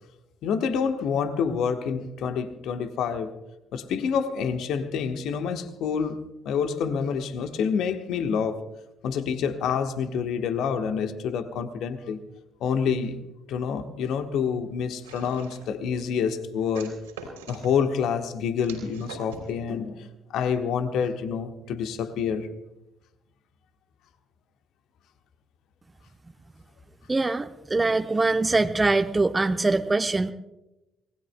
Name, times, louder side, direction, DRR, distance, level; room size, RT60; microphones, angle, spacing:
voice 1, 0.4-3.4 3.7-8.6 9.0-12.2 12.6-13.1 13.5-17.0 17.5-22.5, left 6 dB, 60° left, 1.2 m, -27 dB
sound 1, 15.0-15.8 16.7-17.7 18.6-19.5, right 4 dB, 75° right, 3.3 m, -43 dB
voice 2, 27.1-30.3, right 3 dB, 20° right, 0.8 m, -23 dB
26.5 x 19.5 x 2.2 m
figure-of-eight pair, 45°, 0 cm